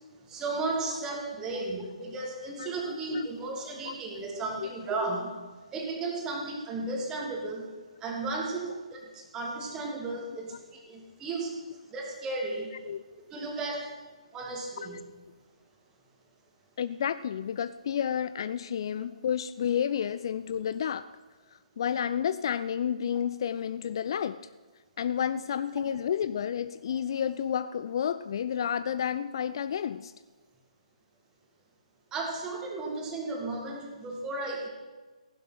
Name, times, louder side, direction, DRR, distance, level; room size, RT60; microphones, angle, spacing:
voice 1, 0.3-5.3 5.7-7.6 8.0-11.6 11.9-12.7 13.3-13.9 14.3-15.0 32.1-34.7, right 3 dB, 15° right, 1 dB, 2.5 m, -34 dB
voice 2, 2.6-3.3 3.8-3.9 4.6-4.7 10.5-10.6 12.9-13.0 14.8-14.9 16.8-21.1 21.5-24.4 25.0-30.1, left 8 dB, 40° left, 14 dB, 0.4 m, -31 dB
15.5 x 11.5 x 5.8 m, 1.3 s
figure-of-eight pair, 135°, 4 cm